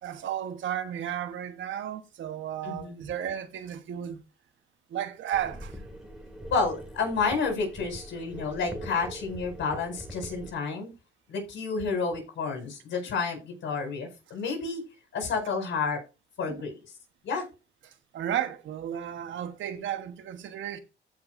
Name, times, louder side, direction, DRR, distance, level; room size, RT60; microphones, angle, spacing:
voice 1, 0.0-4.2 4.9-5.7 16.5-16.7 17.8-20.8, right 10 dB, 70° right, 1.3 m, -33 dB
voice 2, 2.6-3.0 6.5-10.9 11.3-14.8 15.1-16.0 16.4-16.8 17.2-17.5, left 4 dB, 70° left, 4.9 m, -30 dB
sound 1, 5.3-10.5, equal, 5° right, 2.3 m, -43 dB
14.5 x 5.7 x 2.6 m
cardioid pair, 90°, 20 cm